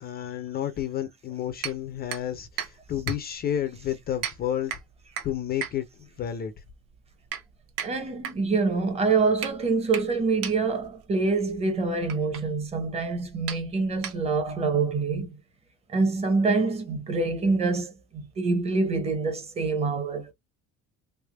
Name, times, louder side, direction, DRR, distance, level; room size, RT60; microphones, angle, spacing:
voice 1, 0.0-4.7 5.2-5.9 6.2-6.5, left 10 dB, 35° left, 0.5 m, -30 dB
sound 1, 1.6-14.6, right 8 dB, 55° right, 0.9 m, -39 dB
voice 2, 7.8-15.4 15.9-20.3, right 4 dB, 20° right, 0.8 m, -26 dB
3.4 x 3.4 x 2.2 m
cardioid pair, 180°, 29 cm